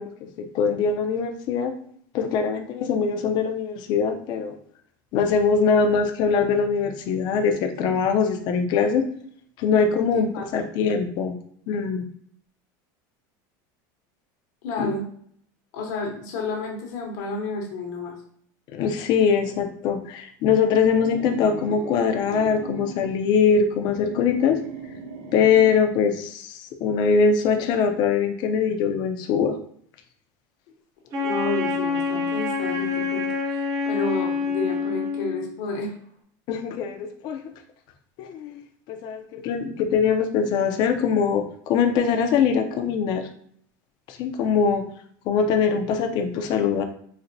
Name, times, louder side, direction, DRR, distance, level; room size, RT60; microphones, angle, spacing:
voice 1, 0.0-1.7 2.1-4.5 5.1-9.1 9.6-11.4 11.7-12.0 14.8-14.9 18.7-24.6 25.3-29.6 36.5-37.4 38.2-38.6 38.9-43.2 44.1-44.8 45.3-46.8, left 6 dB, 45° left, 6 dB, 0.4 m, -22 dB
voice 2, 10.1-10.5 14.6-15.0 15.7-18.1 31.1-35.9, left 3 dB, 70° left, 0 dB, 0.9 m, -30 dB
sound 1, 20.8-23.1 23.7-25.9, right 2 dB, 55° right, 1.0 m, -38 dB
Wind instrument woodwind instrument, 31.1-35.5, left 4 dB, 40° right, 0.6 m, -26 dB
4.1 x 2.1 x 2.6 m, 0.63 s
supercardioid pair, 150°, 10 cm